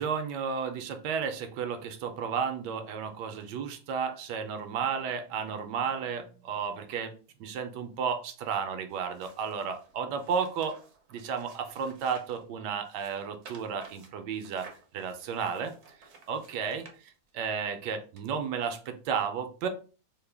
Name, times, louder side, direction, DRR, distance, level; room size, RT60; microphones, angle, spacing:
voice 1, 0.0-7.1 7.4-10.8 11.1-15.7 16.3-19.7, right 6 dB, 80° right, 7 dB, 1.2 m, -33 dB
sound 1, 8.9-12.4 12.8-17.5 18.2-18.3, right 4 dB, 60° right, 0.7 m, -54 dB
3.7 x 2.1 x 3.3 m, 0.38 s
omnidirectional pair, 1.8 m